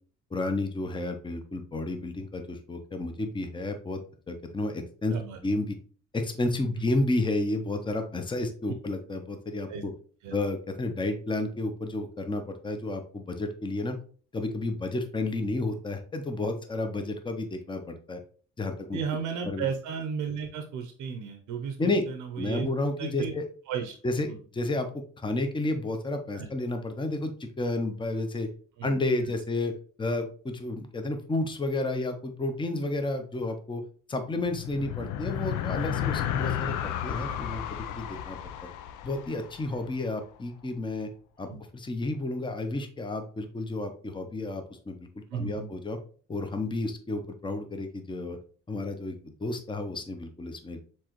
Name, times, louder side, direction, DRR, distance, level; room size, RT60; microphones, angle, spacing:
voice 1, 0.3-4.0 4.3-5.1 5.4-5.8 6.1-9.7 10.3-14.0 14.3-18.2 18.6-19.0 19.5-19.7 21.8-22.0 22.4-23.4 24.0-24.3 24.5-24.9 25.2-28.5 28.8-29.7 30.0-33.8 34.1-36.7 37.0-38.4 39.0-41.1 41.4-41.5 41.7-46.0 46.3-48.4 48.7-50.8, left 2 dB, 15° left, 6 dB, 0.7 m, -31 dB
voice 2, 18.9-22.7 23.0-23.3 23.7-24.0 26.3-26.5 28.8-28.9 29.2-29.3 37.1-37.4 41.5-41.6 45.3-45.7, right 6 dB, 80° right, 6 dB, 0.7 m, -34 dB
sound 1, 34.4-40.1, left 10 dB, 85° left, 0.5 m, -33 dB
4.6 x 3.8 x 3.0 m, 0.43 s
cardioid pair, 90°, 30 cm